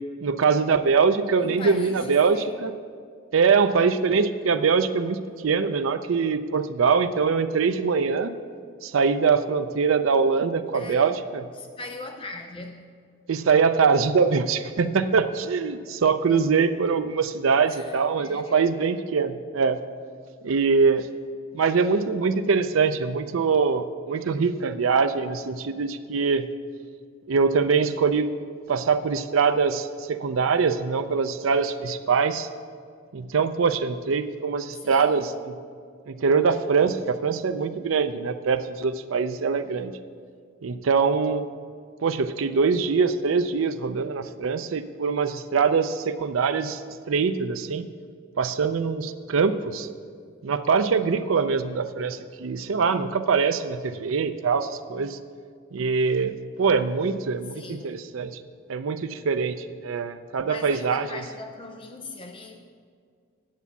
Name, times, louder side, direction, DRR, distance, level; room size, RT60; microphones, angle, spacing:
voice 1, 0.2-2.7 3.3-8.3 8.8-11.4 13.3-19.8 20.4-21.1 21.5-26.5 27.3-28.3 28.7-32.5 33.1-35.6 36.1-39.9 40.6-41.5 42.0-46.8 47.1-47.9 48.4-49.9 50.4-55.2 55.7-58.4 58.7-61.2, right 5 dB, 80° right, 9 dB, 0.5 m, -23 dB
voice 2, 1.4-2.6 10.7-11.1 11.5-12.9 17.7-18.7 34.7-35.4 57.5-58.1 60.4-62.7, left 2 dB, 25° left, 4 dB, 0.6 m, -40 dB
9.5 x 7.0 x 8.3 m, 2.1 s
head